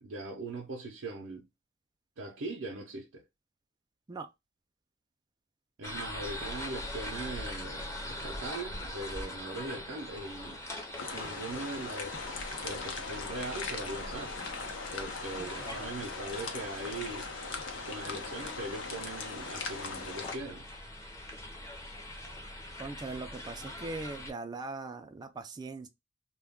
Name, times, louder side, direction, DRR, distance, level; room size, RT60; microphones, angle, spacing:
voice 1, 0.0-1.5 2.2-3.2 5.8-10.6 11.1-14.4 14.9-17.3 17.8-20.7, right 2 dB, 80° right, 0.5 m, -40 dB
sound 1, 5.8-24.3, left 1 dB, 15° left, 0.6 m, -43 dB
sound 2, 11.0-20.4, left 4 dB, 75° left, 0.7 m, -40 dB
voice 2, 15.4-15.8 22.8-25.9, right 3 dB, 20° right, 0.3 m, -40 dB
2.2 x 2.2 x 3.4 m
head